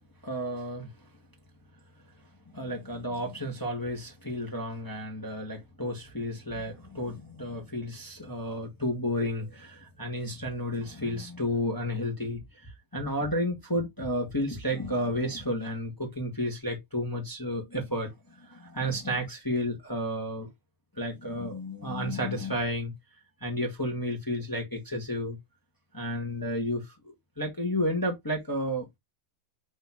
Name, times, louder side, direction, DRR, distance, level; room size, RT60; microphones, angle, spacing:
voice 1, 0.2-0.9 2.5-20.5 21.0-22.9 23.4-25.4 25.9-28.9, equal, 20° left, 0.5 m, -32 dB
8.7 x 3.0 x 3.7 m
omnidirectional pair, 4.0 m